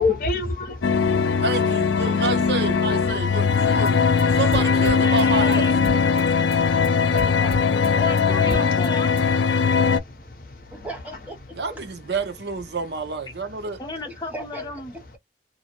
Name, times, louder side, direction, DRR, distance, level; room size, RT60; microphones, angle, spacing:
voice 1, 0.0-1.4 4.3-4.4 6.2-7.1 8.4-8.8 9.6-10.9, left 3 dB, 50° left, 0.7 m, -30 dB
sound 1, 0.8-10.0, left 5 dB, 80° left, 0.4 m, -20 dB
voice 2, 1.4-4.0 4.3-5.7 11.6-13.8, right 4 dB, 70° right, 0.7 m, -28 dB
sound 2, 3.5-9.5, equal, 35° right, 1.3 m, -39 dB
voice 3, 4.6-5.8 8.0-9.2 13.8-15.2, left 3 dB, 20° left, 0.8 m, -34 dB
voice 4, 7.1-7.9 8.2-8.5 10.7-11.4 11.7-11.8 14.0-14.6, right 1 dB, 10° right, 0.6 m, -38 dB
2.6 x 2.1 x 2.8 m
head